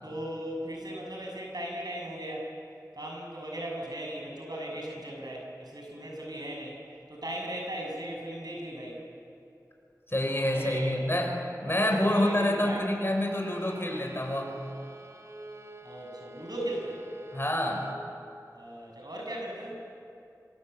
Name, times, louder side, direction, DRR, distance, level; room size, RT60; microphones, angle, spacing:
voice 1, 0.0-2.5 2.9-6.8 7.1-9.0 10.5-11.0 11.6-12.8 15.8-17.0 18.5-19.7, right 1 dB, 80° right, -1 dB, 6.7 m, -37 dB
voice 2, 10.1-11.3 11.6-14.5 17.3-17.8, left 1 dB, 35° left, 1 dB, 5.7 m, -27 dB
Bowed string instrument, 13.0-18.1, right 1 dB, 45° right, 1.5 m, -48 dB
26.0 x 25.5 x 7.9 m, 2.6 s
wide cardioid pair, 40°, 7 cm